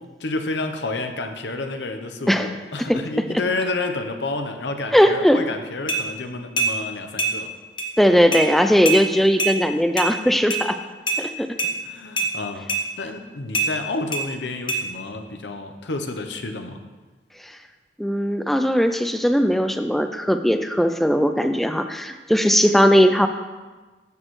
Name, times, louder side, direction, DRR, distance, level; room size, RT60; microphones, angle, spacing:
voice 1, 0.2-7.5 11.6-12.7 13.0-16.8, left 2 dB, 75° left, 6 dB, 0.8 m, -30 dB
voice 2, 4.9-5.4 8.0-10.8 11.2-11.5 18.0-23.3, equal, ahead, 7 dB, 0.3 m, -18 dB
sound 1, 5.9-6.0 6.6-6.7 7.2-7.3 7.8-7.9 8.3-8.5 8.9-9.0 9.4-9.5 10.0-10.1 10.5-10.6 11.1-11.2 11.6-11.7 12.2-12.3 12.7-12.8 13.5-13.7 14.1-14.2 14.7-14.8, right 3 dB, 25° left, 1.1 m, -22 dB
14.0 x 6.2 x 3.2 m, 1.3 s
head